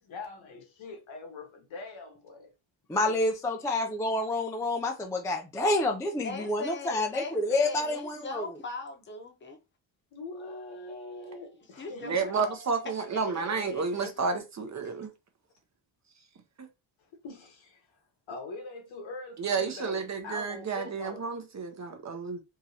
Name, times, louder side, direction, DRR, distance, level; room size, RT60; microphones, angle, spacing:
voice 1, 0.0-2.5 2.9-3.2 10.1-12.2 14.8-14.9 17.2-18.0 18.3-21.3, left 3 dB, 85° left, 1.4 m, -43 dB
voice 2, 2.9-8.5, left 2 dB, 5° left, 0.3 m, -28 dB
voice 3, 6.2-9.6 11.8-14.1, left 3 dB, 25° left, 0.8 m, -40 dB
voice 4, 12.0-15.1 16.6-16.7 19.4-22.4, right 5 dB, 35° right, 0.7 m, -31 dB
3.7 x 2.9 x 2.8 m
wide cardioid pair, 155°, 46 cm